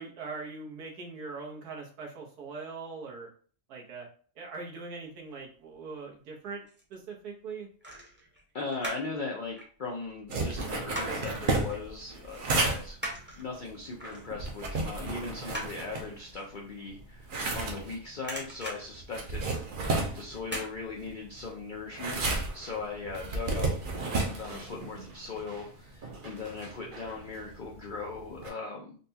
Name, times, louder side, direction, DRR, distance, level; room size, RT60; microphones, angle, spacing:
voice 1, 0.0-3.3 3.7-4.1 4.4-6.6 6.9-7.7, right 4 dB, 90° right, -1 dB, 1.6 m, -41 dB
sound 1, 6.3-7.0 7.8-9.2 9.5-11.3 11.7-11.9 12.2-17.9 18.1-19.8 20.4-20.7 21.1-21.2, right 1 dB, 10° right, 0.6 m, -41 dB
voice 2, 8.5-13.0 13.4-19.5 20.1-22.2 22.5-23.7 24.2-29.0, left 4 dB, 75° left, -1 dB, 0.4 m, -39 dB
sound 2, 10.3-16.5 16.9-28.5, right 3 dB, 55° right, 0.5 m, -33 dB
4.1 x 2.3 x 2.7 m, 0.43 s
omnidirectional pair, 1.6 m